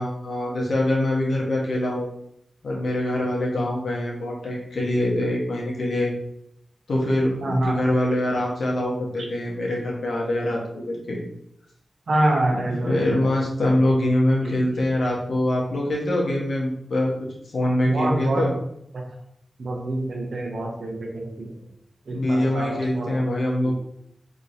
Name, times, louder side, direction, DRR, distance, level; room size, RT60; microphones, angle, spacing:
voice 1, 0.0-2.1 2.6-6.1 6.9-11.2 12.5-17.1 17.5-18.5 22.1-23.8, left 1 dB, 80° left, -3 dB, 1.1 m, -24 dB
voice 2, 7.4-7.8 12.1-13.3 13.7-13.8 14.4-14.5 17.8-18.5 18.9-19.0 19.6-21.5 22.1-23.3 23.6-23.7, right 1 dB, 75° right, 0 dB, 0.8 m, -26 dB
3.7 x 2.9 x 2.6 m, 0.74 s
cardioid pair, 45°, 0 cm